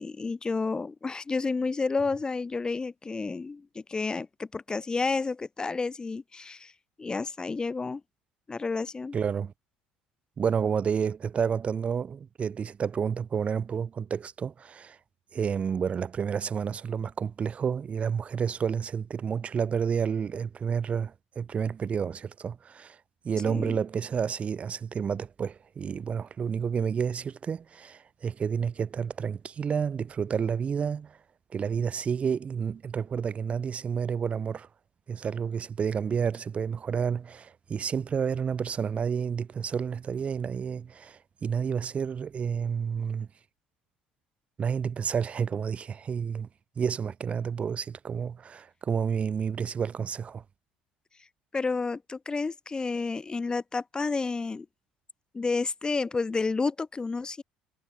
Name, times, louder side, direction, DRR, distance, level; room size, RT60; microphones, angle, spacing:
voice 1, 0.0-6.7 7.0-8.0 8.5-9.2 23.4-23.8 51.5-54.7 55.3-57.4, left 4 dB, 20° left, 2.1 m, -30 dB
voice 2, 9.1-9.5 10.4-15.0 15.3-23.0 23.2-31.2 31.5-34.7 35.1-43.3 44.6-46.5 46.8-50.4, right 7 dB, 35° right, 1.3 m, -30 dB
figure-of-eight pair, 60°, 4 cm